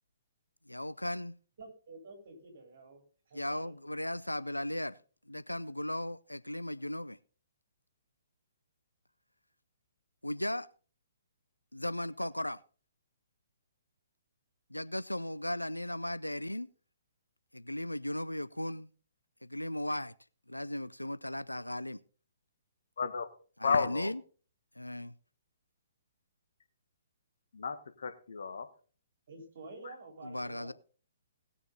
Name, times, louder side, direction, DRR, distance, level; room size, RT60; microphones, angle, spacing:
voice 1, 0.7-1.3 3.3-5.0 5.3-7.2 10.2-10.7 11.7-12.6 14.7-16.7 17.5-18.9 19.4-20.1 20.5-22.0 23.6-24.2 24.8-25.1 30.2-30.7, left 1 dB, 85° left, 0.5 m, -36 dB
voice 2, 1.6-3.7 29.3-30.7, right 3 dB, 50° right, 4.3 m, -50 dB
voice 3, 23.0-23.3 23.6-24.1 27.5-28.7, left 5 dB, 55° left, 1.3 m, -32 dB
18.5 x 7.0 x 3.9 m
figure-of-eight pair, 125°, 0 cm